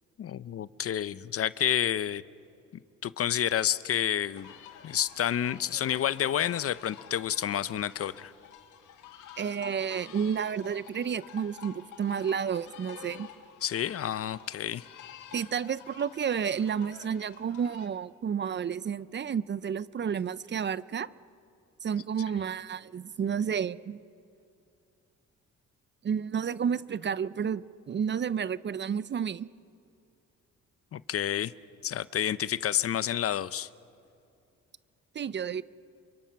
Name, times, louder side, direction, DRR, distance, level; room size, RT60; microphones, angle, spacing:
voice 1, 0.2-2.2 3.0-4.5 4.8-8.3 13.6-14.8 30.9-31.5 31.8-33.7, left 10 dB, 50° left, 17 dB, 0.6 m, -29 dB
sound 1, 4.3-17.9, left 9 dB, 85° left, 1.8 m, -49 dB
voice 2, 9.4-13.3 15.3-21.1 21.8-24.0 26.0-29.5 35.1-35.6, right 7 dB, 35° right, 18 dB, 0.6 m, -31 dB
28.0 x 23.5 x 5.9 m, 2.6 s
cardioid pair, 90°, 30 cm